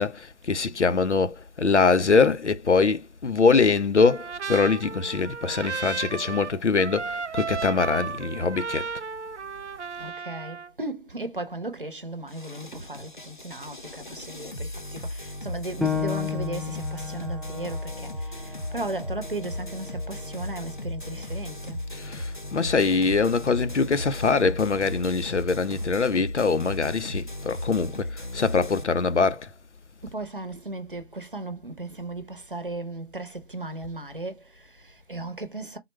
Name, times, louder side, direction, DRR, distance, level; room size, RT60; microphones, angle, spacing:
voice 1, 0.0-8.9 21.9-29.5, left 4 dB, 85° left, 0.6 m, -23 dB
Trumpet, 4.0-10.7, right 5 dB, 85° right, 0.5 m, -34 dB
voice 2, 10.0-21.9 30.0-35.8, right 2 dB, 50° right, 0.7 m, -36 dB
sound 1, 12.3-28.8, left 1 dB, 45° left, 0.6 m, -36 dB
Piano, 15.8-21.0 21.5-21.6 22.2-22.7, left 6 dB, ahead, 0.4 m, -34 dB
3.8 x 2.2 x 3.1 m
figure-of-eight pair, 165°, 34 cm